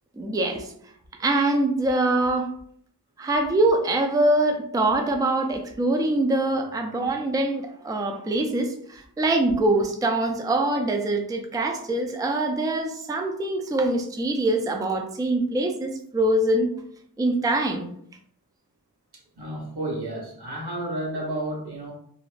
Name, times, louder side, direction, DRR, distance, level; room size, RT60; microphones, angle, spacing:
voice 1, 0.2-0.7 1.2-2.5 3.2-16.7 17.2-17.9, right 2 dB, 10° right, 4 dB, 0.3 m, -24 dB
voice 2, 19.1-21.9, right 1 dB, 90° right, -3 dB, 1.0 m, -32 dB
2.4 x 2.0 x 3.1 m, 0.64 s
wide cardioid pair, 55°, 38 cm